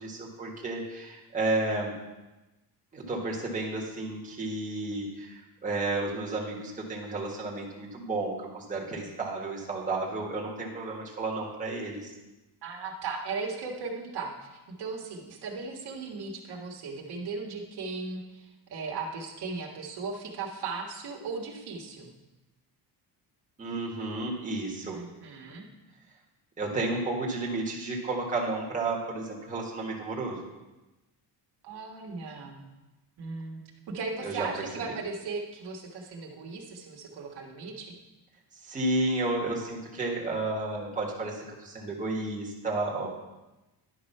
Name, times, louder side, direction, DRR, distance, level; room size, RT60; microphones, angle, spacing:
voice 1, 0.0-1.9 2.9-12.1 23.6-25.0 26.6-30.5 34.2-34.5 38.6-43.1, right 2 dB, 20° right, -3 dB, 1.5 m, -32 dB
voice 2, 12.6-22.1 24.9-25.7 31.6-32.6 33.2-33.6 33.9-37.9, right 4 dB, 65° right, 0 dB, 1.5 m, -37 dB
11.0 x 5.0 x 5.5 m, 1.1 s
cardioid pair, 160°, 42 cm